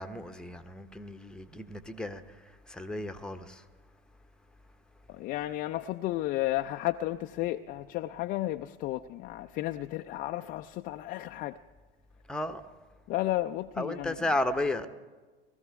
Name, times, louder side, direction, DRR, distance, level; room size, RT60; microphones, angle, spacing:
voice 1, 0.0-2.4 2.7-3.6 12.3-12.6 13.8-14.9, left 1 dB, 5° left, 0.8 m, -33 dB
voice 2, 5.1-11.6 13.1-14.2, left 15 dB, 30° left, 0.4 m, -33 dB
19.5 x 13.5 x 4.7 m
figure-of-eight pair, 90°, 30 cm